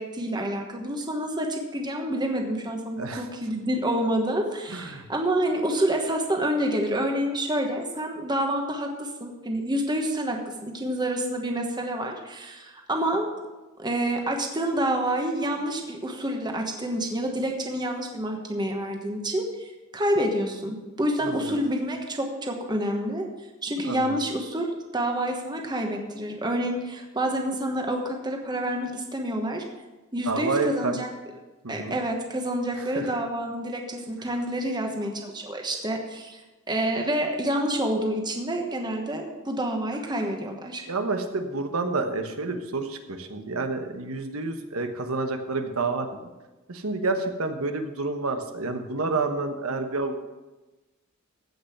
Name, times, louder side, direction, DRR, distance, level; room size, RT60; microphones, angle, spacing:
voice 1, 0.0-13.3 13.8-23.2 23.6-29.6 30.1-31.1 31.7-36.4 36.7-40.9, right 1 dB, 20° right, 2 dB, 1.2 m, -28 dB
voice 2, 4.7-5.1 21.2-21.5 23.8-24.2 30.3-31.0 31.6-32.0 32.7-33.2 40.9-46.3 46.7-50.2, right 3 dB, 85° right, 6 dB, 1.2 m, -29 dB
15.5 x 5.5 x 5.9 m, 1.1 s
head